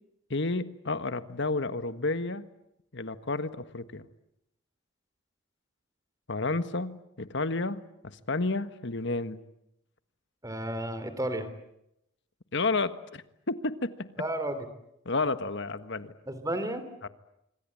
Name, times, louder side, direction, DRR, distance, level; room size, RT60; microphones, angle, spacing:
voice 1, 0.3-2.4 2.9-4.1 6.3-9.4 12.5-14.1 15.0-16.1 17.0-17.1, left 3 dB, 60° left, 12 dB, 1.5 m, -31 dB
voice 2, 10.4-11.5 14.2-14.7 16.3-16.8, right 1 dB, 15° right, 11 dB, 3.2 m, -32 dB
26.0 x 26.0 x 8.6 m, 0.80 s
head